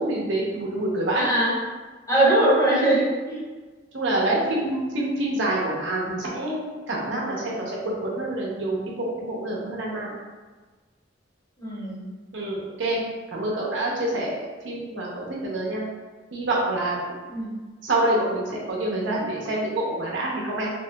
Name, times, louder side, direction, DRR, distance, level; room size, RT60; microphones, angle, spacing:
voice 1, 0.0-1.3 3.9-6.6 6.9-10.2 12.3-13.0 13.3-14.4 14.6-15.8 16.3-17.2 17.8-20.7, right 1 dB, 75° right, -4 dB, 0.7 m, -26 dB
voice 2, 1.1-1.5 2.1-3.4 11.6-12.1 17.3-17.5, right 1 dB, 20° left, -8 dB, 1.0 m, -21 dB
3.0 x 2.9 x 2.2 m, 1.3 s
head